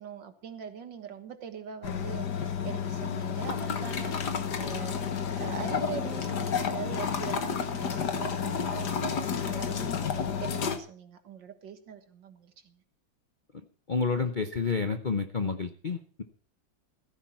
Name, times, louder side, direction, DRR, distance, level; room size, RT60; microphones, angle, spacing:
voice 1, 0.0-5.0 5.4-12.8, right 7 dB, 70° right, 9 dB, 2.1 m, -42 dB
sound 1, 1.8-10.8, left 7 dB, 60° left, 1.8 m, -31 dB
voice 2, 13.9-16.2, left 5 dB, 45° left, 6 dB, 0.6 m, -29 dB
16.0 x 14.5 x 4.4 m, 0.41 s
omnidirectional pair, 2.0 m